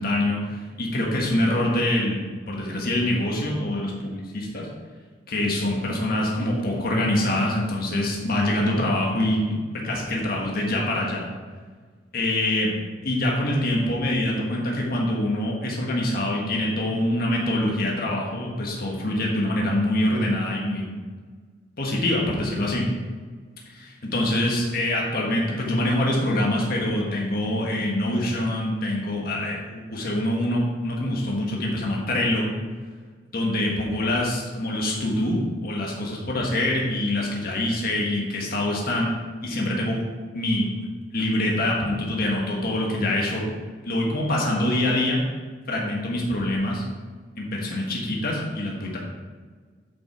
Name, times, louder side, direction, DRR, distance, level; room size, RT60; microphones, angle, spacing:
voice 1, 0.0-2.2 2.5-4.7 5.3-9.5 9.8-11.3 12.1-12.7 13.0-20.9 21.8-22.9 23.7-32.5 33.3-39.1 39.4-40.0 40.3-40.7 41.1-43.5 43.8-45.2 45.7-46.8 47.4-49.0, left 1 dB, 55° left, -2 dB, 1.5 m, -25 dB
7.6 x 5.4 x 4.9 m, 1.5 s
head